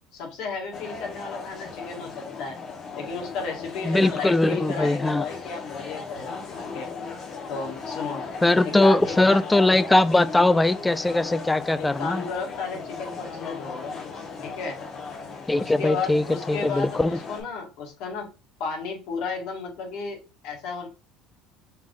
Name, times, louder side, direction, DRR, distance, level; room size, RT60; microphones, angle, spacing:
voice 1, 0.1-2.6 2.9-6.9 7.5-8.2 8.6-9.4 11.8-14.0 14.4-14.8 15.5-18.2 18.6-20.2 20.4-20.9, left 4 dB, 70° left, 1.6 m, -33 dB
sound 1, 0.7-17.4, left 5 dB, 50° left, 1.4 m, -37 dB
voice 2, 3.8-5.3 8.4-12.2 15.5-17.2, left 2 dB, 10° left, 0.3 m, -21 dB
4.4 x 3.5 x 2.5 m
supercardioid pair, 90°, 0 cm